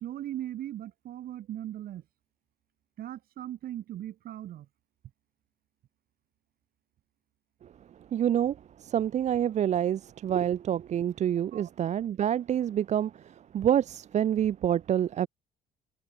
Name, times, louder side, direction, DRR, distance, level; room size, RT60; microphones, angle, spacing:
voice 1, 0.0-2.0 3.0-4.7 11.5-11.7, right 12 dB, 60° right, 1.5 m, -38 dB
voice 2, 8.1-15.3, right 10 dB, 45° right, 0.6 m, -27 dB
cardioid pair, 110°, 17 cm